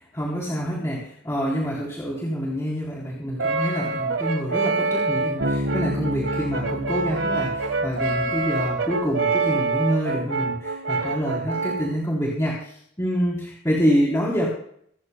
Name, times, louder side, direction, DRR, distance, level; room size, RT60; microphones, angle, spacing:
voice 1, 0.1-14.5, equal, 15° left, -5 dB, 3.3 m, -26 dB
Brass instrument, 3.4-12.0, right 3 dB, 85° right, 1.3 m, -26 dB
Bass guitar, 5.4-9.0, equal, 65° right, 5.0 m, -31 dB
24.5 x 14.0 x 2.2 m, 0.65 s
head